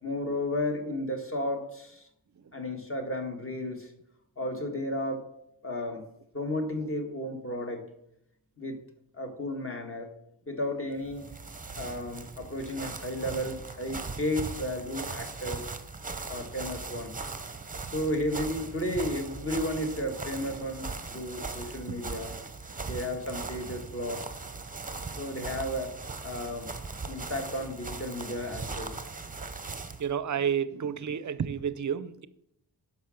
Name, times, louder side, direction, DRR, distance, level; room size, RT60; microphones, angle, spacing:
voice 1, 0.0-2.0 2.5-3.9 4.4-5.3 5.6-6.0 6.3-7.9 8.6-8.8 9.1-10.1 10.5-11.3 11.8-15.7 16.3-17.1 17.9-22.3 22.8-24.2 25.2-25.9 26.2-26.7 27.1-28.9, left 1 dB, 30° left, 1.7 m, -33 dB
sound 1, 11.0-30.1, right 4 dB, 20° right, 0.8 m, -39 dB
voice 2, 21.9-22.3 22.7-22.8 23.9-24.0 24.9-25.0 30.0-32.3, right 8 dB, 45° right, 0.6 m, -32 dB
10.5 x 6.0 x 6.4 m
wide cardioid pair, 130°, 43 cm